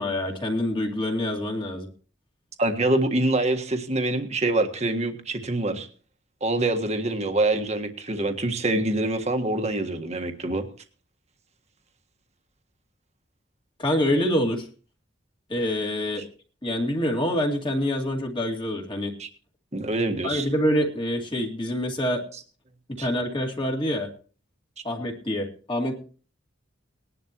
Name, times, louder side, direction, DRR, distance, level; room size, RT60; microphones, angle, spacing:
voice 1, 0.0-1.9 13.8-14.7 15.5-16.2 16.6-19.1 20.2-22.2 23.0-24.1 24.8-25.9, left 1 dB, 25° left, 1 dB, 2.3 m, -26 dB
voice 2, 2.6-5.9 6.4-10.7 16.2-16.3 19.2-19.3 19.7-20.5 23.0-23.1, right 2 dB, 35° right, 5 dB, 1.6 m, -25 dB
20.5 x 11.0 x 3.0 m, 0.41 s
head